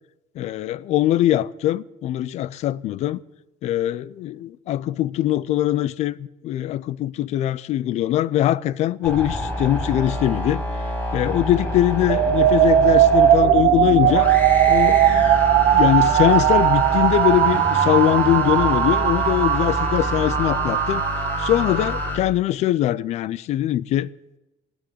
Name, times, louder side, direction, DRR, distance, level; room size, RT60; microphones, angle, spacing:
voice 1, 0.4-3.2 3.6-10.6 11.1-14.3 14.7-15.4 15.7-21.0 21.4-24.1, left 13 dB, 55° left, 0.5 m, -22 dB
sound 1, 9.0-22.2, left 1 dB, 10° left, 2.6 m, -27 dB
sound 2, 12.1-22.1, right 11 dB, 55° right, 0.7 m, -19 dB
14.5 x 6.3 x 9.7 m
cardioid pair, 160°, 14 cm